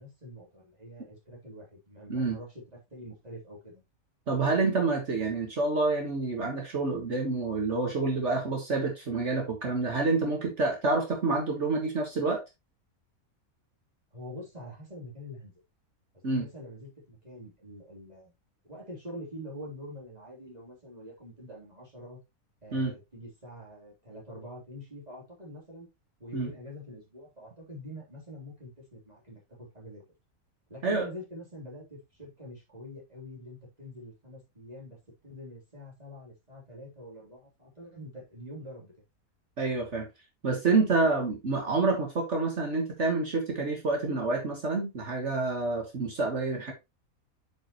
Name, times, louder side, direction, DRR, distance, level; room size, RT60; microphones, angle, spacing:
voice 1, 0.0-2.6 2.9-3.8 14.1-15.5 16.3-18.3 18.6-22.2 22.6-25.9 26.2-30.0 30.7-35.0 35.2-38.9, equal, 25° right, -4 dB, 3.4 m, -45 dB
voice 2, 4.3-12.4 16.2-16.5 22.7-22.9 26.3-26.5 30.8-31.1 39.6-40.1 40.4-46.7, right 3 dB, 55° right, 2 dB, 1.7 m, -28 dB
8.6 x 5.3 x 3.0 m, 0.22 s
omnidirectional pair, 1.5 m